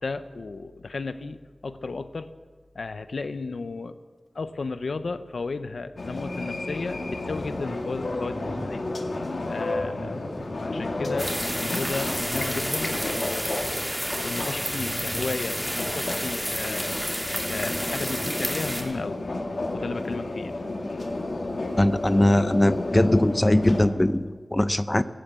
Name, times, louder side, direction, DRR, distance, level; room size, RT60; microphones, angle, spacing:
voice 1, 0.0-2.3 2.7-4.0 4.3-8.8 9.4-13.9 14.2-17.0 17.5-19.2 19.7-20.5, left 3 dB, 85° left, 11 dB, 0.7 m, -34 dB
sound 1, 6.0-23.9, left 2 dB, 70° left, 2.1 m, -32 dB
sound 2, 11.2-18.8, equal, 10° right, 3.0 m, -31 dB
voice 2, 21.8-25.0, left 1 dB, 20° left, 13 dB, 0.6 m, -21 dB
15.0 x 11.5 x 8.2 m, 1.5 s
wide cardioid pair, 60°, 0 cm